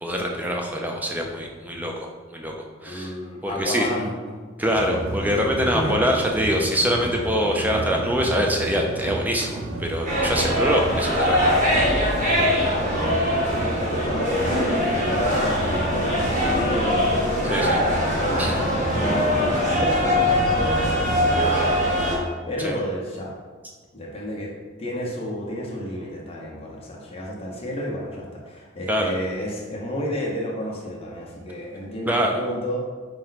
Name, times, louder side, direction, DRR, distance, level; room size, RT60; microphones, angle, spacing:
voice 1, 0.0-2.5 2.8-3.1 3.4-3.9 4.6-12.3 17.5-17.8 18.4-18.5 22.6-22.8 28.9-29.1 32.1-32.3, equal, 10° right, 1 dB, 0.3 m, -24 dB
voice 2, 2.8-4.4 5.7-6.0 12.3-19.0 19.3-23.4 23.9-24.5 24.8-32.8, equal, 30° left, -3 dB, 0.7 m, -31 dB
sound 1, 4.6-21.6, right 1 dB, 90° right, 0.5 m, -31 dB
sound 2, 10.0-22.2, left 1 dB, 40° right, 0.9 m, -22 dB
4.3 x 2.1 x 3.9 m, 1.4 s
head